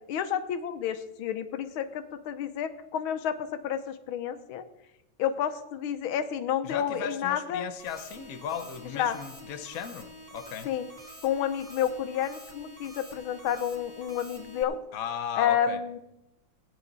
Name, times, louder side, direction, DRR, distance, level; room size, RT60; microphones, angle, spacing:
voice 1, 0.1-4.6 5.2-7.7 8.9-9.2 10.6-10.9 11.2-14.8 15.4-16.0, left 9 dB, 85° left, 10 dB, 1.7 m, -30 dB
voice 2, 6.6-10.7 11.0-11.1 14.9-15.8, left 8 dB, 55° left, 8 dB, 1.1 m, -36 dB
sound 1, 7.8-14.6, equal, 15° right, 2.5 m, -47 dB
17.5 x 9.5 x 4.0 m, 0.92 s
omnidirectional pair, 2.2 m